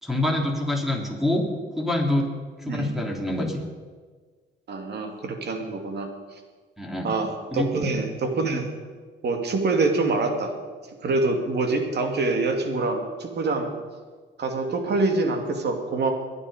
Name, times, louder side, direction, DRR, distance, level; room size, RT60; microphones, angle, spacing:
voice 1, 0.0-1.5 1.8-2.3 2.6-3.6 6.8-7.1 7.5-7.7, left 1 dB, ahead, 1 dB, 3.4 m, -25 dB
voice 2, 4.7-6.1 7.0-8.7 9.2-10.5 11.0-13.7 14.4-16.1, right 3 dB, 55° right, 4 dB, 2.7 m, -25 dB
23.0 x 9.8 x 5.2 m, 1.5 s
cardioid pair, 90°, 20 cm